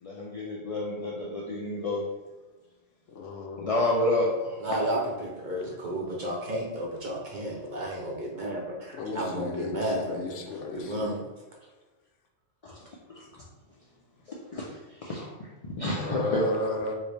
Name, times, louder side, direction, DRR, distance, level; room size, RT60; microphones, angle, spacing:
voice 1, 0.0-2.1 3.6-4.6 12.6-12.8 13.1-13.2 14.3-15.5 15.8-16.5, left 1 dB, 60° left, -4 dB, 0.3 m, -30 dB
voice 2, 3.1-3.7 8.9-11.1 16.0-17.0, left 2 dB, 80° left, 3 dB, 0.9 m, -33 dB
voice 3, 4.6-10.4 10.7-11.2, right 1 dB, 50° right, -3 dB, 0.6 m, -32 dB
4.7 x 2.0 x 3.2 m, 1.2 s
omnidirectional pair, 1.3 m